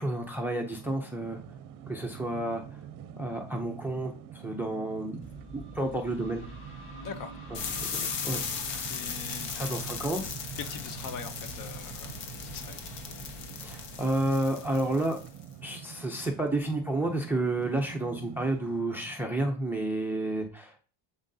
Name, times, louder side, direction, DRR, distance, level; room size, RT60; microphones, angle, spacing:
voice 1, 0.0-1.4 1.9-2.6 3.2-5.2 5.5-6.5 7.8-8.9 9.5-10.2 13.6-15.2 15.6-20.9, right 1 dB, 5° right, 0.4 m, -31 dB
sound 1, 0.7-18.8, right 9 dB, 50° right, 0.6 m, -47 dB
sound 2, 5.2-10.9, equal, 25° left, 1.7 m, -49 dB
voice 2, 7.0-7.4 8.8-9.7 10.6-12.8, left 6 dB, 50° left, 0.7 m, -42 dB
sound 3, 7.5-15.4, left 5 dB, 75° left, 1.3 m, -37 dB
7.3 x 7.3 x 2.7 m
cardioid pair, 175°, 44 cm